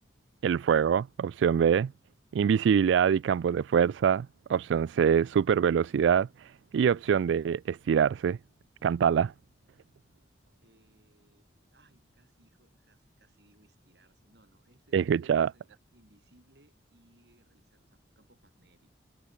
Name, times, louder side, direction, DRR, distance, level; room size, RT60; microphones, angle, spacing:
voice 1, 0.4-1.9 2.3-8.4 8.8-9.3 14.9-15.5, right 7 dB, 85° right, 0.3 m, -25 dB
voice 2, 10.6-18.9, right 1 dB, 65° right, 7.1 m, -65 dB
head